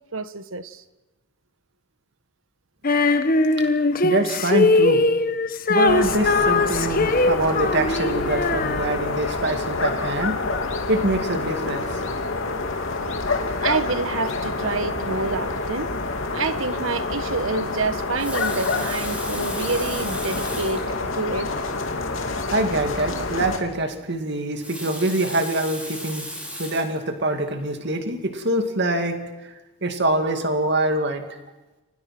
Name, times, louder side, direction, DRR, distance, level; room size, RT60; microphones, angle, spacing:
voice 1, 0.1-0.8 13.6-15.9 16.3-21.5, right 4 dB, 65° right, 1.3 m, -28 dB
Female singing, 2.8-9.3, left 3 dB, 40° left, 1.3 m, -21 dB
voice 2, 3.6-5.0 5.7-10.4 10.9-12.0 22.5-26.3 26.6-31.4, right 1 dB, 50° right, 2.3 m, -25 dB
sound 1, 5.9-23.6, left 3 dB, 65° left, 2.8 m, -27 dB
Water tap faucet, 18.0-20.9 21.7-21.8 22.1-22.2 24.4-27.0 27.6-27.9, equal, 5° right, 4.7 m, -36 dB
29.5 x 25.0 x 6.1 m
head